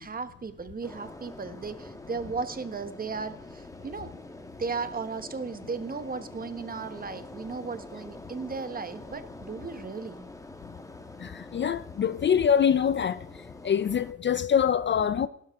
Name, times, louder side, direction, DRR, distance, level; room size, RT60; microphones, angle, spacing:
voice 1, 0.0-4.1 4.6-10.2, right 4 dB, 30° right, 1.3 m, -36 dB
sound 1, 0.8-14.1, left 2 dB, 10° left, 1.4 m, -46 dB
voice 2, 11.2-13.2 13.6-15.3, left 8 dB, 40° left, 0.5 m, -24 dB
17.0 x 12.0 x 3.6 m
cardioid pair, 90°, 30 cm